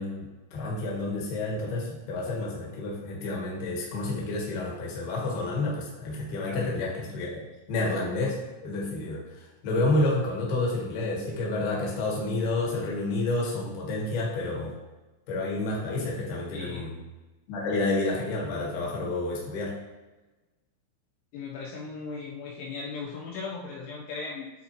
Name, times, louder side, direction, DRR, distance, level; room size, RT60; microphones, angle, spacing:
voice 1, 0.0-7.4 7.7-14.7 15.3-16.9 17.5-19.8, left 2 dB, 65° left, -3 dB, 2.9 m, -29 dB
voice 2, 6.4-6.8 16.5-16.9 21.3-24.5, left 4 dB, 80° left, -3 dB, 3.0 m, -37 dB
9.7 x 4.0 x 3.0 m, 1.2 s
omnidirectional pair, 5.7 m